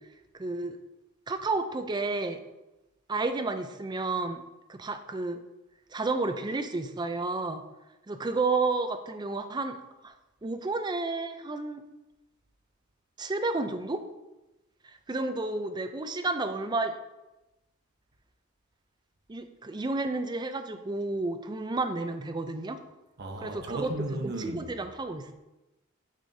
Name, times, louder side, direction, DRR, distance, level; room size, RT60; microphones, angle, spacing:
voice 1, 0.4-0.8 1.3-2.4 3.1-4.4 4.7-5.4 5.9-7.6 8.1-10.1 10.4-11.8 13.2-14.0 14.8-17.0 19.3-22.8 23.4-23.9 24.2-25.3, right 3 dB, 20° right, 0.4 m, -31 dB
voice 2, 23.2-24.7, right 2 dB, 50° right, 0.9 m, -35 dB
9.1 x 4.9 x 2.7 m
head